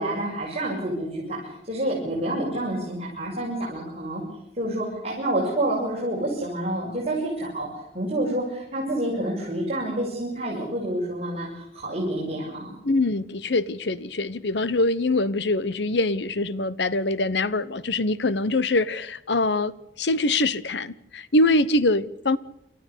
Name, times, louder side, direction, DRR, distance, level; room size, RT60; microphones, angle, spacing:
voice 1, 0.0-4.2 4.6-7.7 7.9-12.7, right 1 dB, 35° right, -4 dB, 6.6 m, -28 dB
voice 2, 12.8-22.4, left 2 dB, 75° left, 17 dB, 1.0 m, -24 dB
28.0 x 14.0 x 8.2 m, 0.81 s
head